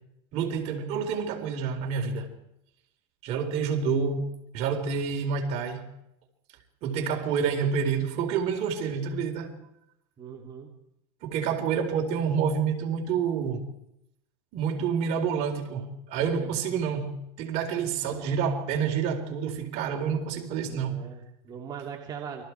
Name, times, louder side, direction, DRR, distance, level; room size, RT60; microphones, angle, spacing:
voice 1, 0.3-2.3 3.2-5.9 6.8-9.5 11.2-13.7 14.5-21.0, right 6 dB, 55° right, 4.2 m, -28 dB
voice 2, 10.2-10.7 16.3-16.5 20.6-22.4, right 7 dB, 30° right, 3.0 m, -40 dB
29.0 x 23.0 x 4.7 m
supercardioid pair, 135°, 14 cm